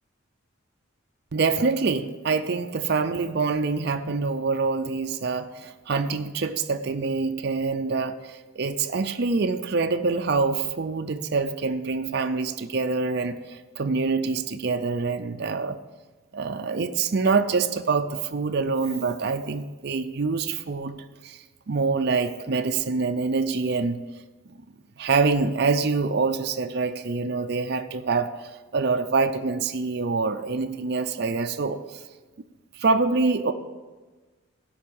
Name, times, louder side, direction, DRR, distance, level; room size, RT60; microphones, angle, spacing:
voice 1, 1.3-15.8 16.3-24.0 25.0-32.0 32.7-33.5, right 4 dB, 50° right, 7 dB, 0.5 m, -25 dB
12.0 x 5.4 x 6.9 m, 1.3 s
head